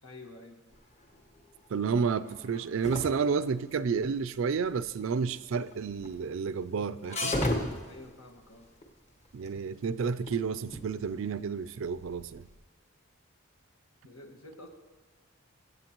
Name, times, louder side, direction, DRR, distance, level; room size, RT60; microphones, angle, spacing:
voice 1, 0.0-0.6 7.8-8.7 14.0-14.7, left 2 dB, 80° left, 3 dB, 1.6 m, -49 dB
sound 1, 0.7-12.5, left 1 dB, 35° left, 1.1 m, -37 dB
voice 2, 1.7-7.4 9.3-12.5, right 5 dB, 65° right, 15 dB, 0.4 m, -31 dB
23.0 x 7.9 x 3.0 m, 1.4 s
head